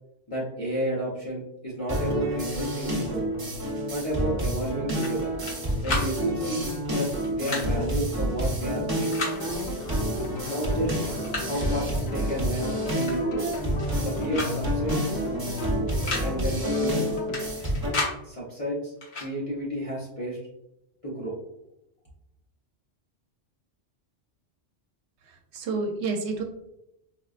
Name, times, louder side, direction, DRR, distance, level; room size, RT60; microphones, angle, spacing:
voice 1, 0.3-3.3 3.9-5.3 5.8-9.1 10.4-10.9 11.4-13.5 14.0-15.2 16.2-17.0 18.2-20.4 21.0-21.3, right 1 dB, 35° left, -6 dB, 0.6 m, -31 dB
sound 1, 1.9-17.9, equal, 20° right, 0.8 m, -29 dB
sound 2, 5.0-5.6 5.8-6.1 7.2-7.7 8.9-9.4 10.5-10.6 11.0-11.6 13.0-13.2 13.4-14.0 14.3-14.5 14.8-14.9 15.9-16.3 17.3-18.2 19.0-19.3, left 3 dB, 85° left, 1.3 m, -32 dB
sound 3, 9.2-17.4, left 3 dB, 70° left, 0.8 m, -38 dB
voice 2, 25.2-26.4, right 3 dB, 75° right, 4 dB, 0.9 m, -30 dB
4.4 x 2.2 x 2.4 m, 0.84 s
omnidirectional pair, 1.2 m